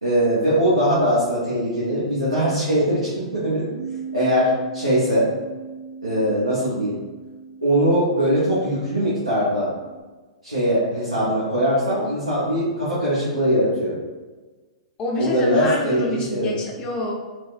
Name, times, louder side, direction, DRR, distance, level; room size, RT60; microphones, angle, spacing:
voice 1, 0.0-3.7 4.1-5.3 6.0-7.0 7.6-9.7 10.4-14.0 15.2-16.6, equal, 90° right, -10 dB, 0.8 m, -21 dB
Bass guitar, 3.8-10.0, right 5 dB, 55° right, 0.5 m, -38 dB
voice 2, 15.0-17.1, left 2 dB, 25° left, -1 dB, 0.5 m, -26 dB
3.3 x 2.0 x 2.5 m, 1.3 s
figure-of-eight pair, 110°, 3 cm